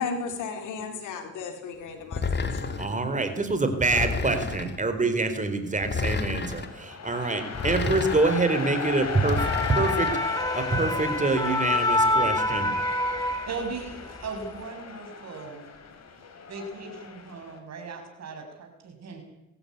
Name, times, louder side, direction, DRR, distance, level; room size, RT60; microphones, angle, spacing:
voice 1, 0.0-2.8, left 5 dB, 85° left, 5 dB, 3.8 m, -34 dB
sound 1, 2.1-3.0 3.9-4.8 5.8-6.7 7.6-8.4 9.2-10.2, left 4 dB, 35° left, 2.6 m, -31 dB
voice 2, 2.8-12.7, right 3 dB, 25° right, 8 dB, 4.3 m, -26 dB
sound 2, 6.1-17.6, left 6 dB, 60° left, 4.8 m, -37 dB
sound 3, 9.1-13.9 14.2-14.5, left 1 dB, 10° left, 2.9 m, -27 dB
voice 3, 13.5-15.7 16.5-19.2, right 4 dB, 60° right, 4 dB, 6.5 m, -38 dB
23.0 x 14.0 x 9.6 m, 0.91 s
cardioid pair, 90°, 30 cm